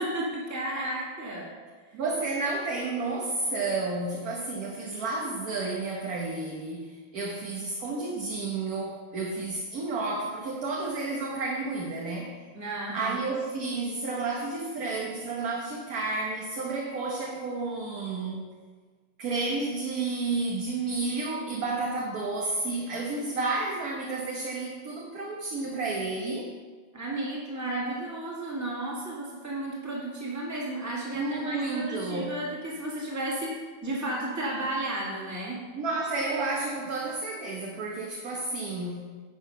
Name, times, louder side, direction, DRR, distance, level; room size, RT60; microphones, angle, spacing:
voice 1, 0.0-1.5 12.5-13.3 26.9-35.6, right 1 dB, 10° right, -4 dB, 1.9 m, -33 dB
voice 2, 1.9-12.3 12.9-18.4 19.2-26.5 31.1-32.3 35.7-39.0, right 3 dB, 55° right, -2 dB, 1.5 m, -31 dB
10.5 x 6.0 x 5.4 m, 1.5 s
omnidirectional pair, 2.0 m